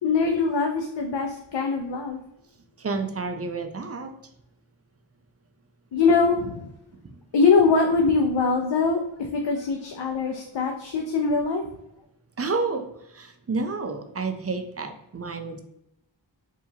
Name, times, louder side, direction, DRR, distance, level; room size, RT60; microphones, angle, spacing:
voice 1, 0.0-2.2 5.9-6.7 7.3-11.6, left 4 dB, 70° left, 3 dB, 0.6 m, -22 dB
voice 2, 2.8-4.1 7.0-7.2 12.4-15.6, right 4 dB, 35° right, 7 dB, 0.5 m, -30 dB
4.7 x 2.9 x 2.8 m, 0.83 s
wide cardioid pair, 50°, 45 cm